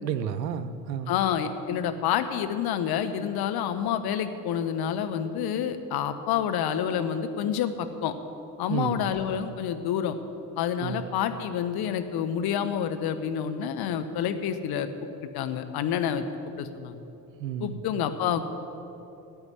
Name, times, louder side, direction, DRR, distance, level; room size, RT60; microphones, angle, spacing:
voice 1, 0.0-1.1 8.7-9.0 10.8-11.0 17.4-17.8, right 8 dB, 80° right, 12 dB, 0.7 m, -31 dB
voice 2, 1.1-8.1 8.6-10.2 10.6-14.9 15.3-16.2 16.6-17.0 17.6-18.5, left 9 dB, 50° left, 9 dB, 1.0 m, -28 dB
9.3 x 8.9 x 9.8 m, 2.9 s
figure-of-eight pair, 55°, 50 cm